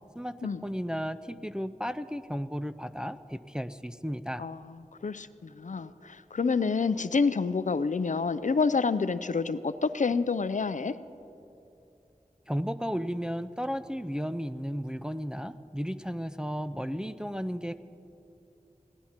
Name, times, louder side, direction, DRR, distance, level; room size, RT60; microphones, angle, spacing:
voice 1, 0.6-4.4 12.5-17.8, equal, 5° right, 11 dB, 0.4 m, -34 dB
voice 2, 4.4-11.0, left 4 dB, 65° left, 13 dB, 0.4 m, -28 dB
21.5 x 16.5 x 2.9 m, 2.8 s
wide cardioid pair, 50°, 14 cm